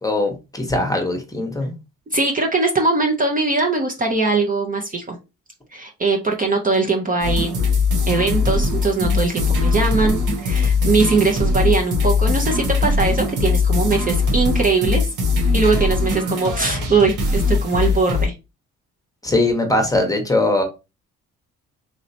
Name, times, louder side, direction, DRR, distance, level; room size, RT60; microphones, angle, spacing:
voice 1, 0.0-1.7 19.2-20.6, left 2 dB, 10° left, 0.9 m, -20 dB
voice 2, 2.1-5.2 5.7-7.6 8.1-15.1 15.5-18.3, right 3 dB, 30° right, 0.7 m, -21 dB
sound 1, 7.2-18.3, left 3 dB, 85° right, 1.1 m, -20 dB
3.2 x 2.8 x 2.7 m
cardioid pair, 90°, 30 cm